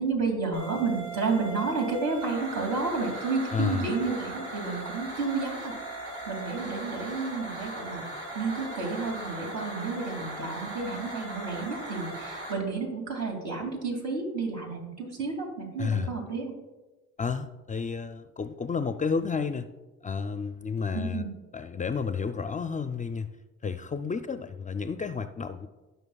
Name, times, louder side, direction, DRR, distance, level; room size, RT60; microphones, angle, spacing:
voice 1, 0.0-5.7 6.3-8.1 8.3-16.5 20.9-21.3, right 4 dB, 65° right, 1 dB, 2.4 m, -31 dB
sound 1, 0.5-12.5, right 2 dB, 85° right, 3.0 m, -39 dB
voice 2, 3.5-3.9 15.8-16.1 17.2-19.7 20.0-21.3 21.5-23.3 23.6-25.7, left 5 dB, 25° left, 10 dB, 0.4 m, -31 dB
16.5 x 5.6 x 2.3 m, 1.1 s
cardioid pair, 90°, 30 cm